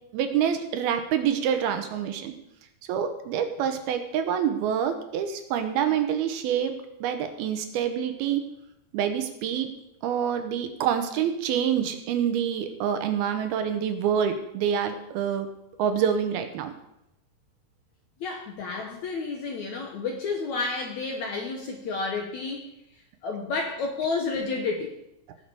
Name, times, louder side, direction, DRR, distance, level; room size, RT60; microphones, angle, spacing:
voice 1, 0.1-2.3 2.9-8.4 8.9-9.7 10.0-15.5 15.8-16.7, right 8 dB, 80° right, 7 dB, 2.8 m, -26 dB
voice 2, 18.2-22.7 23.2-24.9, left 4 dB, 65° left, 2 dB, 1.9 m, -30 dB
18.5 x 6.8 x 4.7 m, 0.84 s
omnidirectional pair, 4.6 m